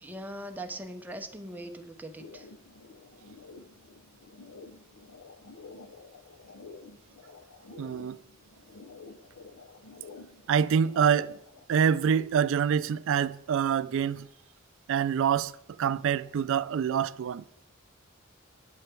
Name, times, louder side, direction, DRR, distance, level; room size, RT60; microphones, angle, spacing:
voice 1, 0.0-2.5, right 1 dB, 10° right, 0.7 m, -40 dB
sound 1, 2.2-11.6, left 3 dB, 70° left, 0.6 m, -50 dB
voice 2, 7.8-8.2 10.5-11.4 11.7-14.3 14.9-15.5 15.8-17.4, right 7 dB, 65° right, 0.3 m, -26 dB
9.4 x 7.7 x 4.5 m
head